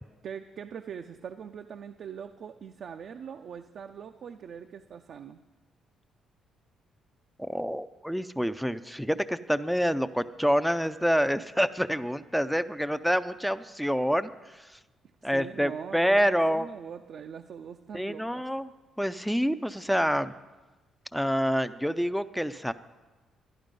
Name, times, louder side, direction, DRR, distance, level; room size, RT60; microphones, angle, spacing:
voice 1, 0.2-5.4 15.2-18.4, right 7 dB, 60° right, 5 dB, 0.5 m, -42 dB
voice 2, 7.4-14.7 15.2-16.7 17.9-18.7 19.0-20.3 21.1-22.7, equal, ahead, 11 dB, 0.4 m, -27 dB
12.0 x 11.0 x 5.2 m, 1.2 s
cardioid pair, 90°, 0 cm